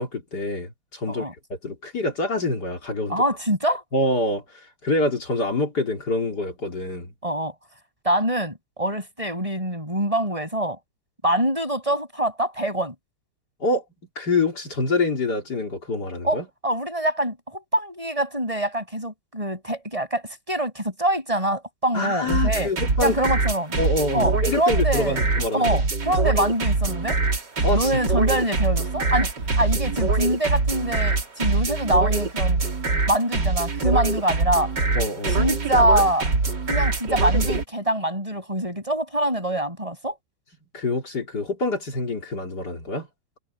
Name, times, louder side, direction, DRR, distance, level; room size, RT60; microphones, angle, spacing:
voice 1, 0.0-1.3 1.6-3.2 3.9-4.4 4.8-7.1 13.6-13.8 14.2-16.4 21.9-23.2 23.8-25.7 27.6-27.9 35.0-35.5 40.7-43.1, left 2 dB, 55° left, 4.0 m, -26 dB
voice 2, 3.1-3.8 7.2-7.5 8.0-10.8 11.2-13.0 16.2-22.7 23.0-23.8 24.1-25.3 25.5-27.2 27.7-29.3 29.6-32.6 33.1-34.7 35.3-36.3 36.7-40.2, right 1 dB, 15° right, 6.9 m, -24 dB
sound 1, 22.3-37.6, right 3 dB, 65° right, 3.5 m, -23 dB
omnidirectional pair, 2.1 m